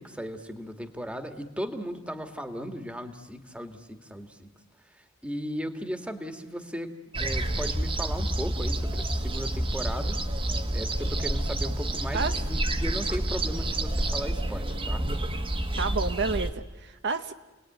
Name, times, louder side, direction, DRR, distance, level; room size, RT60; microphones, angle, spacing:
voice 1, 0.0-4.5 5.2-6.9 7.2-10.2 10.7-15.0, equal, 5° right, 7 dB, 1.8 m, -36 dB
sound 1, 7.1-16.5, right 1 dB, 25° right, 1.4 m, -29 dB
voice 2, 15.8-17.3, right 4 dB, 55° right, 8 dB, 0.9 m, -30 dB
30.0 x 19.5 x 9.3 m, 1.2 s
head